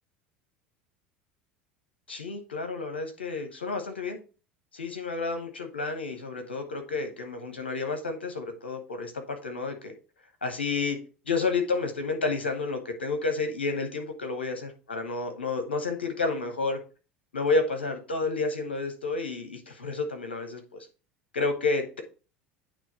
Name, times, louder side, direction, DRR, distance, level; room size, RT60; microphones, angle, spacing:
voice 1, 2.1-4.2 4.7-9.9 10.4-11.0 11.3-16.8 17.3-20.9 21.3-22.0, left 3 dB, 85° left, 6 dB, 1.1 m, -30 dB
8.8 x 3.1 x 4.2 m, 0.33 s
figure-of-eight pair, 70°, 6 cm